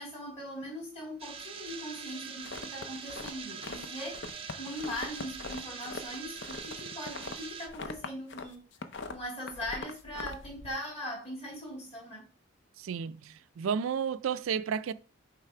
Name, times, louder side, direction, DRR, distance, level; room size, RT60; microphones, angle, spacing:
voice 1, 0.0-4.2 4.5-8.6 9.1-12.2, equal, 30° left, 2.5 m, -40 dB
sound 1, 1.2-7.7, right 6 dB, 25° right, 0.6 m, -43 dB
sound 2, 2.4-3.9 4.1-8.5 8.7-10.7, left 3 dB, 55° left, 0.6 m, -42 dB
voice 2, 12.8-14.9, right 7 dB, 75° right, 0.4 m, -32 dB
6.6 x 3.3 x 4.8 m
head